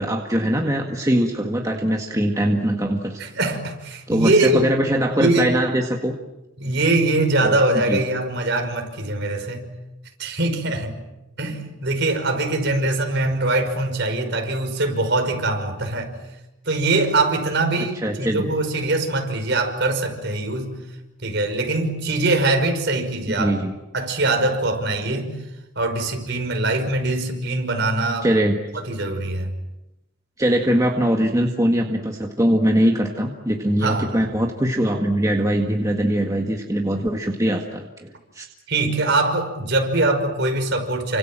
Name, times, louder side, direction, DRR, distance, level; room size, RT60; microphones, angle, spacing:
voice 1, 0.0-3.2 4.1-6.1 7.4-7.6 7.9-8.0 17.8-18.5 23.4-23.7 28.2-28.6 30.4-38.1 38.3-38.5, equal, 15° right, 2 dB, 1.8 m, -21 dB
voice 2, 3.2-4.7 5.1-5.5 6.6-9.7 10.2-11.0 11.4-16.1 16.7-20.8 21.2-23.6 23.9-25.3 25.8-28.3 28.7-29.5 33.8-34.2 38.7-41.2, right 2 dB, 50° right, 5 dB, 5.5 m, -22 dB
29.5 x 26.0 x 7.6 m, 0.95 s
head